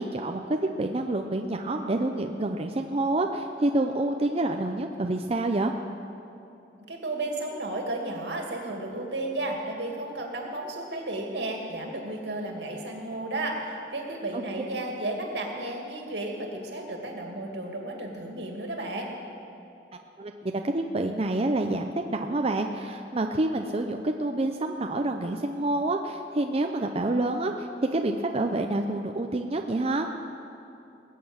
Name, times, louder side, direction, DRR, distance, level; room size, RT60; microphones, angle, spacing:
voice 1, 0.0-5.7 20.2-30.1, right 2 dB, 35° right, 4 dB, 0.6 m, -28 dB
voice 2, 6.9-19.1, right 2 dB, 80° right, 1 dB, 2.4 m, -33 dB
19.5 x 8.4 x 7.2 m, 2.8 s
head